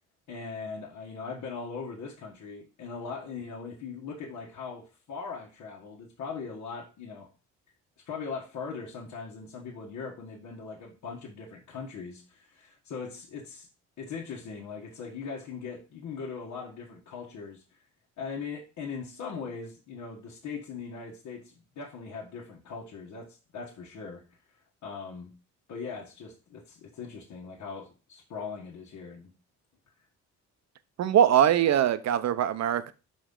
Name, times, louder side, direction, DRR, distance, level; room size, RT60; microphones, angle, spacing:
voice 1, 0.3-7.3 8.0-13.7 14.0-17.8 18.2-24.2 24.5-25.3 25.7-29.3, left 5 dB, 75° left, 1.4 m, -40 dB
voice 2, 31.0-32.9, right 10 dB, 60° right, 0.7 m, -22 dB
5.5 x 5.1 x 3.7 m
cardioid pair, 90°, 30 cm